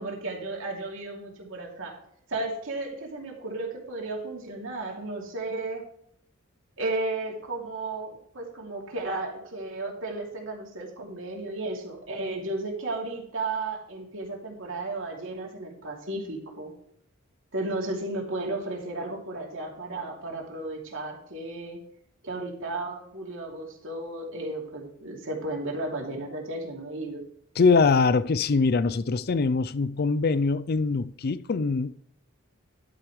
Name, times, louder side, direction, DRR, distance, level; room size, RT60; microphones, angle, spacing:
voice 1, 0.0-2.0 2.3-5.9 6.8-16.7 17.5-21.8 22.2-27.2, right 2 dB, 65° right, 2.8 m, -34 dB
voice 2, 27.6-31.9, left 4 dB, 50° left, 0.4 m, -23 dB
11.5 x 9.3 x 3.2 m
head